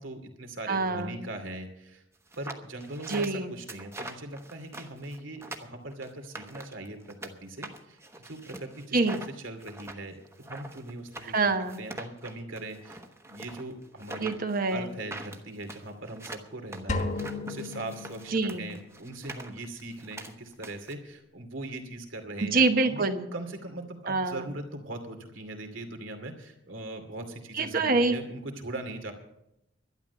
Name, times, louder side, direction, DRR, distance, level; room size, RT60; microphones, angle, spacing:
voice 1, 0.0-2.0 2.4-11.4 11.8-14.4 14.7-23.0 23.3-29.1, right 2 dB, 75° right, 5 dB, 2.5 m, -40 dB
voice 2, 0.7-1.3 3.1-3.5 8.9-9.2 11.2-11.8 14.2-14.9 18.3-18.7 22.4-23.2 24.1-24.4 27.5-28.2, right 3 dB, 45° right, 7 dB, 1.1 m, -26 dB
sound 1, 2.3-7.3 7.6-20.9, right 2 dB, 15° right, 1.1 m, -43 dB
sound 2, 16.9-18.9, left 3 dB, 40° left, 1.4 m, -34 dB
12.0 x 11.0 x 6.9 m, 0.82 s
head